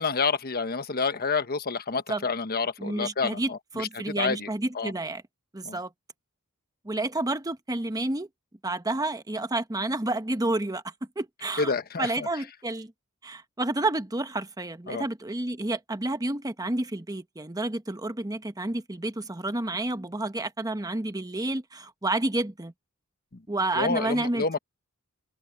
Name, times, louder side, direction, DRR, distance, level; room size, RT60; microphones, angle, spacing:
voice 1, 0.0-3.9 4.2-4.5 4.7-4.9 5.6-5.8 11.6-12.3 14.9-15.0 23.3-23.4 23.7-24.6, left 4 dB, 45° left, 1.2 m, -28 dB
voice 2, 2.8-5.2 5.5-5.9 6.8-8.3 8.6-12.9 13.2-22.7 23.5-24.6, right 2 dB, 15° right, 1.1 m, -30 dB
open air
head